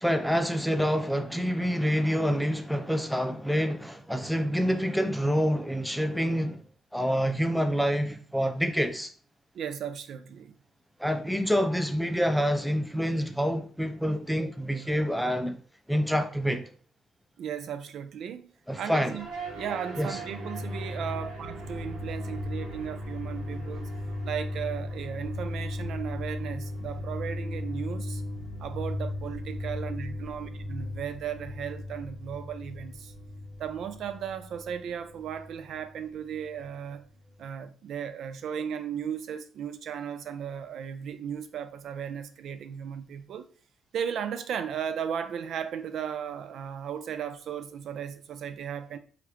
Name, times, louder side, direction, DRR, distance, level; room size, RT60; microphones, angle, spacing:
voice 1, 0.0-6.6 6.9-9.1 11.0-15.6 15.9-16.7 18.7-19.2 20.0-20.2, equal, ahead, 0.4 m, -27 dB
voice 2, 9.5-10.5 17.4-19.3 19.6-23.9 24.2-28.2 28.6-33.1 33.6-37.0 37.4-43.5 43.9-49.0, right 8 dB, 70° right, 0.3 m, -36 dB
sound 1, 19.1-37.4, left 1 dB, 85° right, 0.9 m, -37 dB
2.9 x 2.4 x 3.2 m
cardioid pair, 90°, 0 cm